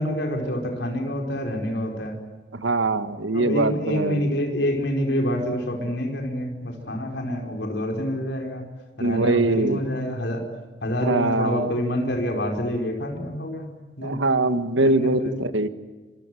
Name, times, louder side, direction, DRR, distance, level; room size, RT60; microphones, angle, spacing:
voice 1, 0.0-2.2 3.3-8.6 9.0-10.4 10.8-13.7 14.0-14.2 14.8-15.3, equal, 65° left, 2 dB, 5.0 m, -27 dB
voice 2, 2.5-4.3 9.0-9.8 11.0-11.7 14.0-15.7, right 2 dB, 90° right, 10 dB, 1.7 m, -22 dB
26.0 x 25.0 x 7.8 m, 1.3 s
head